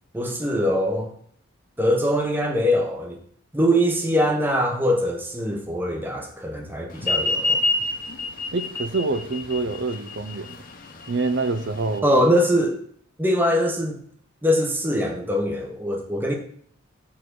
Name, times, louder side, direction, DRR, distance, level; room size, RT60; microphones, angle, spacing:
voice 1, 0.1-1.1 1.8-3.2 3.5-7.6 12.0-12.8 13.2-14.0 14.4-16.3, equal, 10° right, 1.0 m, -22 dB
sound 1, 7.0-12.0, left 2 dB, 45° left, 1.0 m, -27 dB
voice 2, 8.5-10.6 11.1-12.2, right 3 dB, 60° right, 0.6 m, -26 dB
7.2 x 3.8 x 6.4 m
head